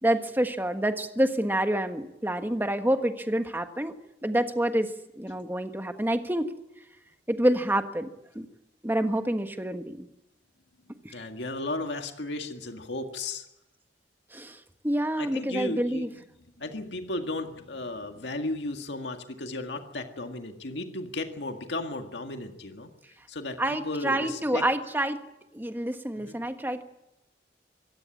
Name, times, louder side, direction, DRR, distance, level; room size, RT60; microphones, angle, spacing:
voice 1, 0.0-4.0 4.2-4.9 5.2-6.5 7.3-8.1 8.3-8.5 8.8-10.1 11.0-11.2 14.3-16.1 23.6-25.2 25.5-26.8, right 1 dB, 10° right, 7 dB, 1.4 m, -27 dB
voice 2, 10.9-13.5 15.2-16.1 16.6-22.9 23.3-24.6 26.2-26.4, left 2 dB, 75° left, 5 dB, 1.9 m, -35 dB
25.0 x 15.5 x 8.6 m, 0.90 s
head